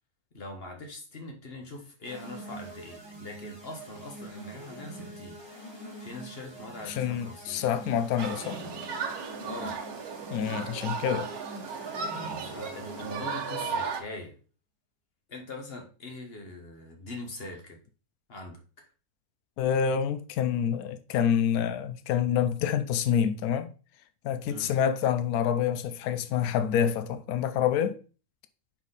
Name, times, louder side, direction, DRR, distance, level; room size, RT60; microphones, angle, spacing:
voice 1, 0.3-5.4 6.0-7.6 9.4-9.8 12.4-14.4 15.3-17.8 18.3-18.8 24.4-24.7, left 2 dB, 45° left, 1.5 m, -42 dB
sound 1, 2.0-13.6, right 1 dB, 20° right, 1.4 m, -44 dB
voice 2, 6.9-8.6 10.3-11.3 19.6-23.7 24.2-28.0, left 8 dB, 80° left, 1.1 m, -27 dB
Human group actions, 8.2-14.0, right 5 dB, 90° right, 1.5 m, -35 dB
5.7 x 4.4 x 4.0 m
omnidirectional pair, 1.6 m